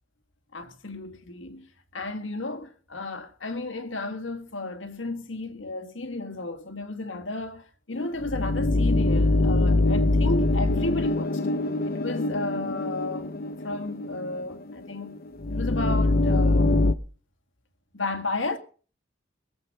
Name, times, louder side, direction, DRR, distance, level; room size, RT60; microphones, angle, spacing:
voice 1, 0.5-11.4 11.9-13.3 13.6-15.2 15.5-16.8 17.9-18.6, left 2 dB, 90° left, 1.9 m, -33 dB
sound 1, 8.2-16.9, left 2 dB, 55° left, 0.8 m, -24 dB
22.0 x 8.0 x 5.3 m
head